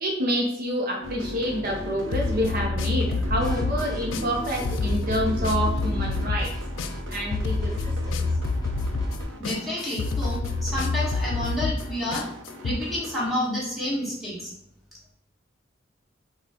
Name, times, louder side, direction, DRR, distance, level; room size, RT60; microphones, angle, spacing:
voice 1, 0.0-6.6 7.1-8.2, equal, 50° right, 0 dB, 0.7 m, -28 dB
sound 1, 1.0-13.3, left 1 dB, 90° right, 0.8 m, -38 dB
sound 2, 2.1-12.8, left 3 dB, 80° left, 0.3 m, -28 dB
sound 3, 3.2-9.2, equal, 20° left, 0.8 m, -35 dB
voice 2, 9.4-12.3 12.6-14.5, left 1 dB, ahead, -7 dB, 1.5 m, -29 dB
5.7 x 2.3 x 3.7 m, 0.78 s
head